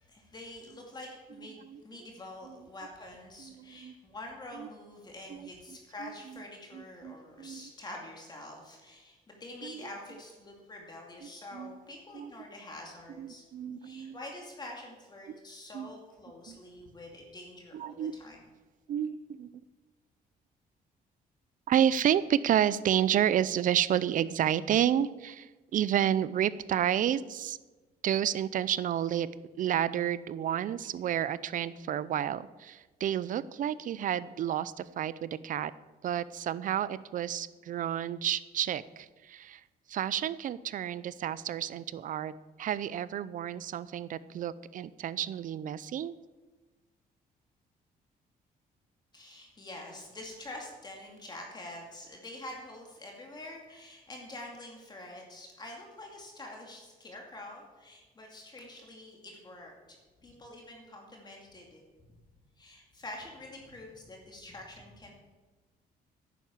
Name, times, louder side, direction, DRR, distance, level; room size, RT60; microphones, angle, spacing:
voice 1, 0.0-13.4 13.8-18.4 49.1-60.0 60.2-61.8 62.6-65.1, left 1 dB, 25° left, 0 dB, 2.4 m, -46 dB
voice 2, 3.4-3.9 4.5-4.7 5.3-5.5 6.0-6.4 6.7-7.7 9.6-9.9 11.2-11.8 12.1-12.3 13.2-14.2 15.7-15.9 16.5-16.6 17.7-18.1 18.9-19.5 21.7-27.6 28.0-29.3 29.6-35.7 36.0-39.6 39.9-42.3 42.6-46.1, right 10 dB, 55° right, 17 dB, 0.6 m, -30 dB
11.0 x 9.3 x 7.2 m, 1.2 s
cardioid pair, 130°, 16 cm